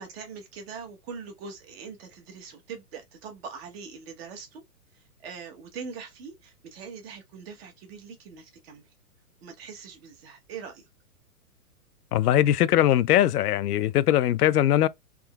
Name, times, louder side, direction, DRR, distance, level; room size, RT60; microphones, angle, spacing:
voice 1, 0.0-4.6 4.9-8.8 9.4-10.8, right 5 dB, 40° right, 1.2 m, -42 dB
voice 2, 12.1-14.9, left 12 dB, 85° left, 0.5 m, -21 dB
3.6 x 2.9 x 2.3 m
hypercardioid pair, 155°, 45 cm